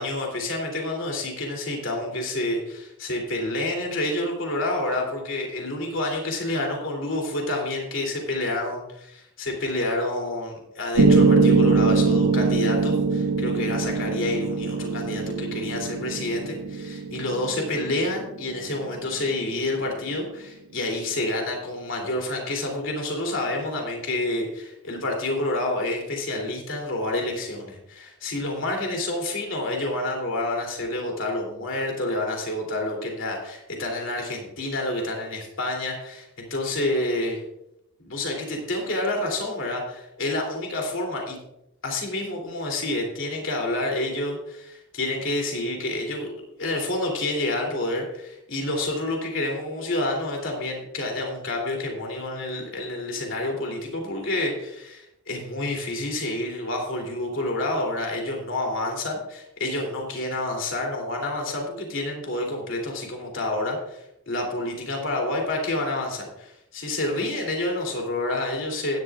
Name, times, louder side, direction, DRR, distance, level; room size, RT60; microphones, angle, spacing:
voice 1, 0.0-37.4 38.0-41.4 41.8-46.3 46.6-69.0, left 2 dB, 60° left, 1 dB, 3.1 m, -28 dB
Piano, 11.0-19.0, right 3 dB, 85° right, 1.1 m, -22 dB
15.5 x 11.0 x 2.5 m, 0.83 s
head